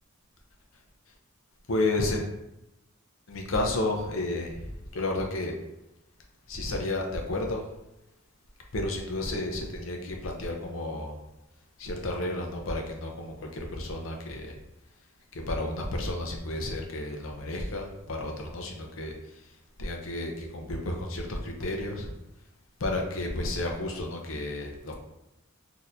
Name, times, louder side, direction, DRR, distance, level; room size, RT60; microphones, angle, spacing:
voice 1, 1.7-2.3 3.3-5.5 6.5-7.6 8.7-11.1 11.8-14.6 15.3-19.5 19.8-22.1 22.8-24.9, left 2 dB, 75° left, 2 dB, 0.7 m, -32 dB
4.1 x 2.8 x 2.6 m, 0.91 s
head